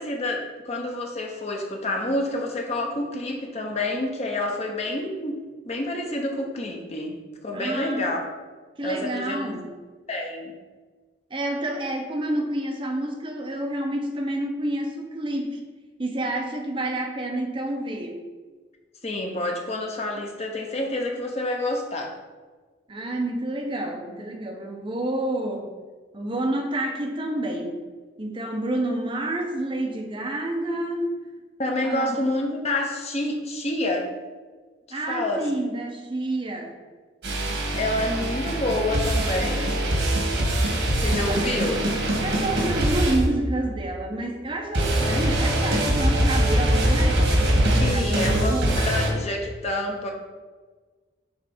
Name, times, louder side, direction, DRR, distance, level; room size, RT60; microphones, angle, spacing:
voice 1, 0.0-5.4 5.6-7.2 7.4-8.2 8.8-9.4 10.1-10.5 19.0-22.2 31.6-34.1 34.9-35.5 37.7-39.8 41.0-41.8 47.8-50.1, left 1 dB, 35° left, 1 dB, 0.8 m, -28 dB
voice 2, 7.5-8.1 8.8-9.7 11.3-15.6 16.0-18.2 22.9-25.7 26.1-27.8 28.2-31.1 31.8-32.1 34.9-36.7 41.1-41.4 42.2-49.2, right 1 dB, 30° right, 2 dB, 0.8 m, -29 dB
sound 1, 37.2-43.9 44.7-49.1, right 1 dB, 80° right, 1.8 m, -23 dB
7.7 x 3.4 x 4.2 m, 1.4 s
head